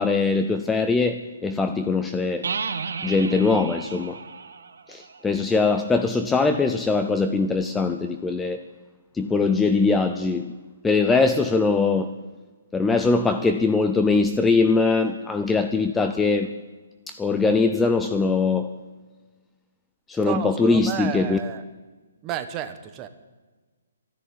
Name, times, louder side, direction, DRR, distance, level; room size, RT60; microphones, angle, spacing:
voice 1, 0.0-2.5 3.0-4.2 4.9-8.6 9.1-10.5 10.8-12.1 12.7-16.5 17.1-18.7 20.1-21.4, left 4 dB, 5° left, 0.5 m, -22 dB
sound 1, 2.4-6.1, right 5 dB, 75° right, 1.4 m, -34 dB
voice 2, 20.2-21.6 22.2-23.1, right 11 dB, 20° right, 1.0 m, -31 dB
13.0 x 10.5 x 9.1 m
hypercardioid pair, 160°, 0 cm